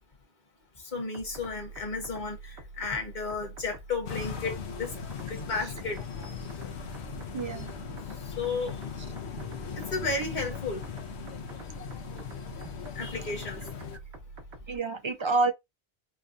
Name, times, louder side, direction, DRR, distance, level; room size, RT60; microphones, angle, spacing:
voice 1, 0.9-4.9 5.3-6.0 8.4-8.7 9.9-10.8 13.0-13.6, left 3 dB, 45° left, 1.3 m, -33 dB
sound 1, 1.1-14.8, right 3 dB, 85° right, 1.3 m, -46 dB
sound 2, 4.1-14.0, left 7 dB, 90° left, 1.0 m, -39 dB
voice 2, 7.3-7.7 9.4-9.5 14.7-15.5, right 3 dB, 45° right, 0.4 m, -28 dB
4.6 x 2.2 x 2.5 m
omnidirectional pair, 1.1 m